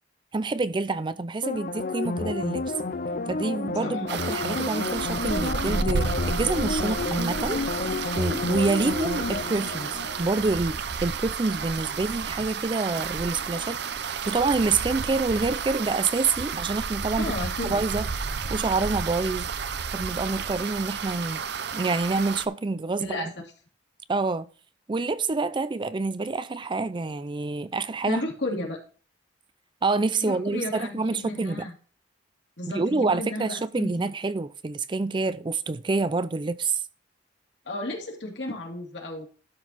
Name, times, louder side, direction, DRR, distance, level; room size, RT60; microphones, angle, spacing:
voice 1, 0.3-2.7 3.3-7.6 8.2-13.8 14.0-17.3 17.7-18.1 18.5-19.5 19.9-21.4 21.7-23.3 24.1-24.5 24.9-28.2 29.8-31.7 32.7-36.8, right 3 dB, 25° right, 0.4 m, -27 dB
sound 1, 1.4-10.8 11.2-11.3, left 3 dB, 50° left, 0.6 m, -30 dB
sound 2, 4.1-22.5, right 5 dB, 65° right, 0.7 m, -31 dB
voice 2, 17.2-17.8 23.0-23.3 28.1-28.8 30.2-31.7 32.6-34.1 37.6-39.3, left 2 dB, 65° left, 2.6 m, -33 dB
12.5 x 4.6 x 4.2 m
head